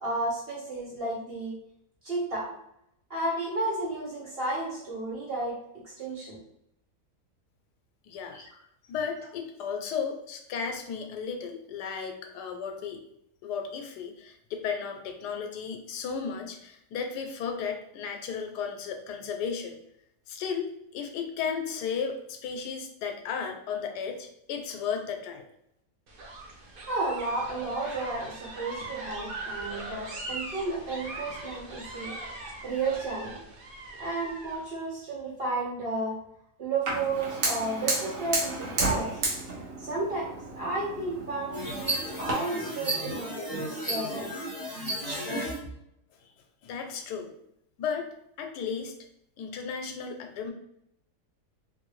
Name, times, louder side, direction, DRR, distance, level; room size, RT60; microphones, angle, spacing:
voice 1, 0.0-1.5 2.0-2.5 3.1-5.6 5.8-6.4 8.3-8.4 26.9-32.1 32.6-33.4 34.0-36.2 36.6-39.2 39.8-40.3 40.6-44.4, right 2 dB, 45° right, -5 dB, 0.9 m, -32 dB
voice 2, 8.0-8.4 8.9-13.0 13.4-19.8 20.3-25.4 46.6-47.3 47.8-48.1 48.4-49.0 49.4-50.5, left 6 dB, 85° left, 4 dB, 1.2 m, -34 dB
sound 1, 26.1-34.6, right 2 dB, 85° right, 0.4 m, -40 dB
Fire, 36.9-42.3, right 2 dB, 60° right, 1.2 m, -32 dB
sound 2, 41.5-45.6, right 1 dB, 15° right, 1.0 m, -33 dB
2.9 x 2.6 x 3.0 m, 0.76 s
omnidirectional pair, 1.7 m